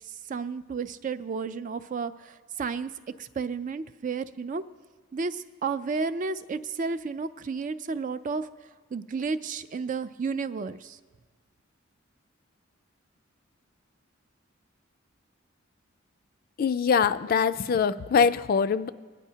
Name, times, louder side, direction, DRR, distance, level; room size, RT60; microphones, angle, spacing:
voice 1, 0.3-2.9 3.2-4.6 5.1-8.5 8.9-11.0, right 4 dB, 40° right, 12 dB, 0.4 m, -32 dB
voice 2, 16.6-18.9, left 6 dB, 45° left, 13 dB, 0.4 m, -23 dB
20.5 x 9.8 x 2.8 m, 1.4 s
head